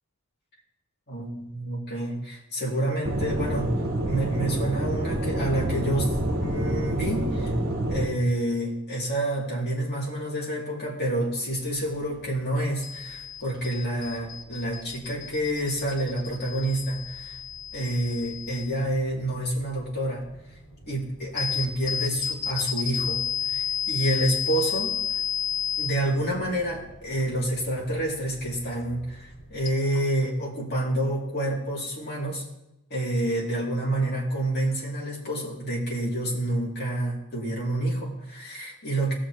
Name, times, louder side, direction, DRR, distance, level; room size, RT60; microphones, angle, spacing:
voice 1, 1.1-3.7 4.0-6.1 6.4-7.5 7.9-17.4 17.7-20.2 20.9-23.2 23.5-25.0 25.8-32.4 32.9-39.1, right 1 dB, 50° left, -5 dB, 3.0 m, -28 dB
Aircraft / Engine, 3.0-8.0, right 1 dB, 45° right, 1.5 m, -27 dB
sound 1, 11.5-29.7, left 7 dB, 65° left, 4.2 m, -34 dB
19.0 x 6.3 x 3.2 m, 0.92 s
head